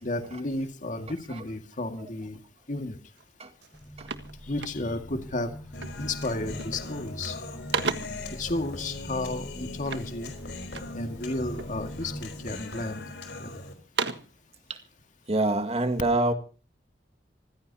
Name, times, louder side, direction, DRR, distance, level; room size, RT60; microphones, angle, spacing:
voice 1, 0.0-2.4 2.7-3.0 4.5-5.5 6.0-7.4 8.3-10.3 10.9-13.0 13.4-13.6, left 2 dB, 45° left, 2.2 m, -32 dB
sound 1, 3.2-3.3 3.6-5.2 5.8-6.1 6.4-6.9 7.3-8.3 9.8-11.0 11.5-12.2 12.7-13.4 13.7-14.4, right 5 dB, 80° right, 1.5 m, -35 dB
sound 2, 3.7-12.5, equal, 5° left, 1.9 m, -42 dB
Human voice, 5.7-13.7, left 2 dB, 70° left, 4.6 m, -41 dB
voice 2, 15.3-16.3, right 2 dB, 35° right, 2.1 m, -25 dB
26.0 x 15.5 x 2.9 m
head